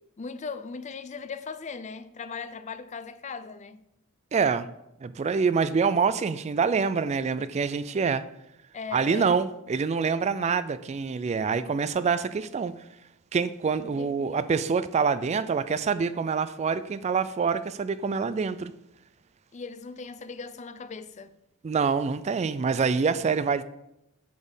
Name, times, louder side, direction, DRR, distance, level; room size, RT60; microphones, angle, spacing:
voice 1, 0.0-3.8 8.7-9.4 14.0-14.4 19.5-21.3, left 5 dB, 35° left, 0.5 m, -39 dB
voice 2, 4.3-4.7 5.0-8.3 8.9-12.7 13.3-18.7 21.6-23.6, right 5 dB, 30° right, 0.3 m, -26 dB
8.4 x 4.2 x 7.1 m
head